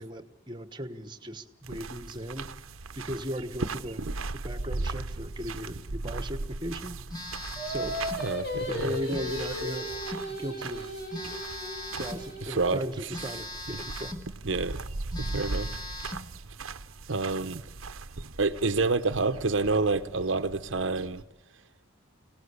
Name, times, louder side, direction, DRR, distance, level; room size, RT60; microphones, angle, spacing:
voice 1, 0.0-2.5 2.9-7.0 7.6-8.0 8.7-9.9 10.3-11.4 12.0-14.1, equal, 20° right, 9 dB, 1.3 m, -37 dB
sound 1, 1.6-21.2, right 3 dB, 90° right, 0.9 m, -39 dB
Telephone, 7.1-8.3 9.1-10.3 11.1-12.3 13.1-14.3 14.7-14.8 15.1-16.3, left 1 dB, 20° left, 1.7 m, -39 dB
Singing, 7.6-12.9, equal, 50° left, 3.9 m, -36 dB
voice 2, 8.2-8.9 12.4-13.1 13.7-13.8 14.4-14.8 15.2-15.7 17.1-17.6 18.4-21.2, right 3 dB, 65° right, 10 dB, 0.9 m, -28 dB
25.0 x 18.0 x 8.2 m, 0.91 s
head